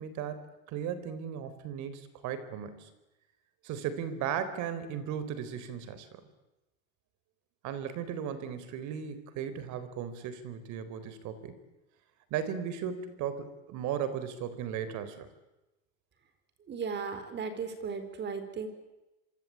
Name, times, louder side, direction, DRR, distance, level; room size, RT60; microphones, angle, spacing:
voice 1, 0.0-2.9 3.6-6.2 7.6-11.6 12.3-15.3, right 8 dB, 45° right, 13 dB, 4.1 m, -36 dB
voice 2, 16.7-18.7, right 5 dB, 25° right, 11 dB, 4.3 m, -36 dB
26.5 x 24.5 x 8.7 m, 0.99 s
supercardioid pair, 150°, 39 cm